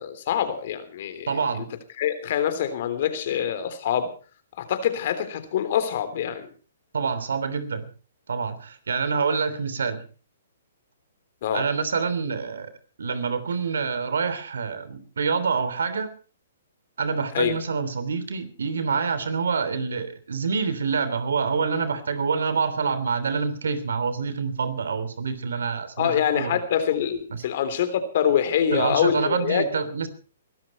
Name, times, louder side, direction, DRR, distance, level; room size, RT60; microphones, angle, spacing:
voice 1, 0.0-1.7 2.0-4.1 4.6-6.5 11.4-11.7 17.3-17.6 26.0-29.6, left 9 dB, 55° left, 10 dB, 3.4 m, -25 dB
voice 2, 1.3-1.7 6.9-7.9 8.3-10.0 11.5-12.7 13.0-16.1 17.0-26.6 27.3-27.4 28.7-30.1, right 5 dB, 80° right, 13 dB, 3.2 m, -26 dB
22.0 x 12.5 x 4.5 m, 0.38 s
hypercardioid pair, 140°, 0 cm